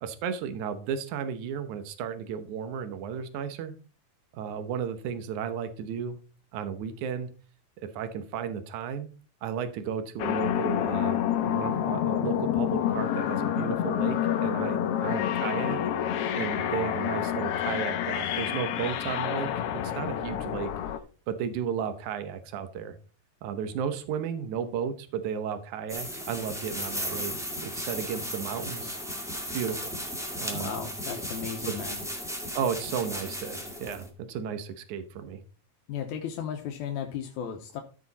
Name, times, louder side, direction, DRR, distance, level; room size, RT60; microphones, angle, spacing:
voice 1, 0.0-3.7 4.3-6.2 6.5-7.3 8.0-9.1 9.4-15.8 16.3-20.7 21.3-23.0 23.4-27.3 27.6-29.0 29.5-29.9 30.4-30.7 31.7-31.8 32.5-35.4, right 7 dB, 80° right, 9 dB, 2.4 m, -34 dB
sound 1, 10.2-21.0, left 10 dB, 70° left, 1.5 m, -28 dB
sound 2, 25.9-34.1, equal, ahead, 1.3 m, -35 dB
voice 2, 30.5-32.0 35.9-37.8, left 8 dB, 85° left, 4 dB, 2.4 m, -35 dB
14.0 x 5.1 x 4.1 m, 0.36 s
omnidirectional pair, 3.4 m